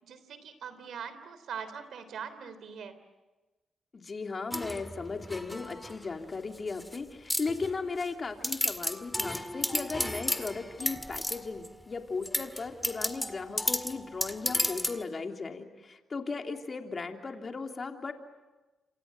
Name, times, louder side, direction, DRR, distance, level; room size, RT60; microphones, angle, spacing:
voice 1, 0.0-3.0, right 7 dB, 75° right, 12 dB, 3.4 m, -42 dB
voice 2, 3.9-18.1, left 4 dB, 40° left, 4 dB, 3.2 m, -36 dB
sound 1, 4.5-6.1 6.6-7.0 7.3-8.1 8.4-11.7 12.2-15.0, left 1 dB, 5° left, 1.9 m, -33 dB
28.5 x 27.0 x 7.8 m, 1.1 s
cardioid pair, 70°, 0 cm